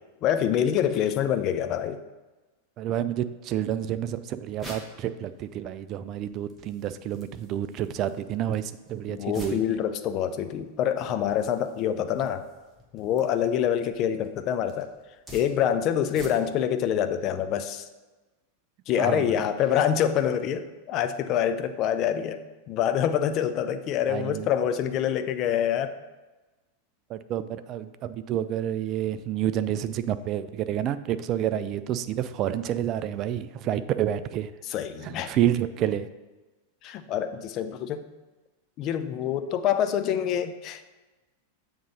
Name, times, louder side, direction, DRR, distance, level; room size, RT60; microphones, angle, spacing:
voice 1, 0.2-2.0 9.1-12.5 12.9-14.9 15.3-17.8 18.9-22.4 22.7-26.0 34.7-35.3 36.8-38.0 38.8-40.8, left 9 dB, 35° left, 9 dB, 0.4 m, -26 dB
voice 2, 2.8-9.6 19.0-19.4 24.1-24.5 27.1-34.5 35.0-36.1, right 11 dB, 35° right, 13 dB, 0.3 m, -29 dB
sound 1, 4.6-16.7, right 1 dB, 10° right, 1.2 m, -50 dB
7.3 x 3.0 x 5.1 m, 1.2 s
figure-of-eight pair, 90°, 0 cm